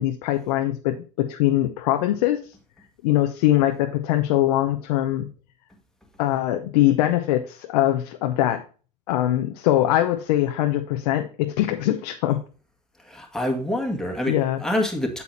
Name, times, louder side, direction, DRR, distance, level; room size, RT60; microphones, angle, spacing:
voice 1, 0.0-2.5 3.0-5.3 6.2-8.6 9.1-12.4 14.3-14.6, left 13 dB, 70° left, 0.8 m, -22 dB
voice 2, 13.0-15.2, left 1 dB, 5° left, 1.8 m, -26 dB
8.4 x 7.0 x 2.7 m
hypercardioid pair, 95°, 21 cm